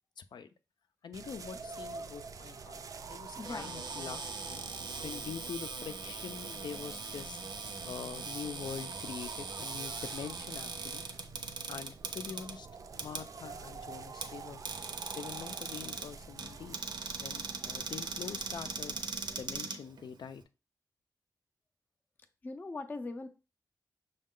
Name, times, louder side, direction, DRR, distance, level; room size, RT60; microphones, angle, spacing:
voice 1, 0.2-0.5 1.0-2.8 3.1-4.6 5.0-7.4 7.8-11.0 11.7-12.7 12.9-14.6 15.2-16.8 17.2-18.9 19.4-20.4, left 7 dB, 85° left, 0.4 m, -44 dB
sound 1, 1.1-19.6, right 5 dB, 50° right, 0.3 m, -48 dB
voice 2, 3.4-3.7 22.4-23.3, left 3 dB, 25° left, 0.4 m, -40 dB
Cupboard open or close, 3.4-20.4, right 4 dB, 85° right, 0.7 m, -41 dB
6.3 x 2.3 x 3.6 m
wide cardioid pair, 145°, 7 cm